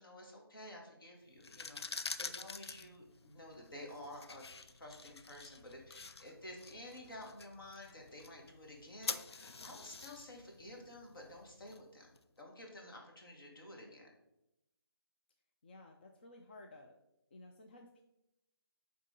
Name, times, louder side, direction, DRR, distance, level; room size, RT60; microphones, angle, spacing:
voice 1, 0.0-4.5 4.8-14.1, left 1 dB, 60° left, 0 dB, 1.9 m, -52 dB
sound 1, 1.3-12.2, left 4 dB, 85° left, 0.4 m, -47 dB
voice 2, 15.6-17.0 17.3-18.0, left 2 dB, 25° left, 2 dB, 0.3 m, -55 dB
8.8 x 3.7 x 3.8 m, 0.88 s
figure-of-eight pair, 155°, 13 cm